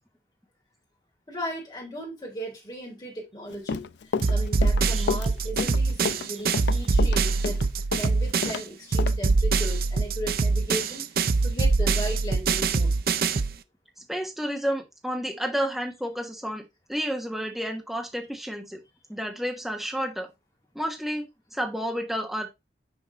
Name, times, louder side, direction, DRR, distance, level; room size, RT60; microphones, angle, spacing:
voice 1, 1.3-7.6 7.9-13.0, equal, 25° left, 3.1 m, -37 dB
Run, 3.5-8.6 9.0-9.1, left 5 dB, 85° left, 0.4 m, -30 dB
sound 1, 4.2-8.6 8.9-13.6, right 4 dB, 55° right, 0.5 m, -24 dB
voice 2, 14.1-16.6 16.9-18.8 19.1-20.3 20.7-21.3 21.5-22.5, equal, ahead, 1.2 m, -30 dB
6.2 x 5.0 x 4.1 m
head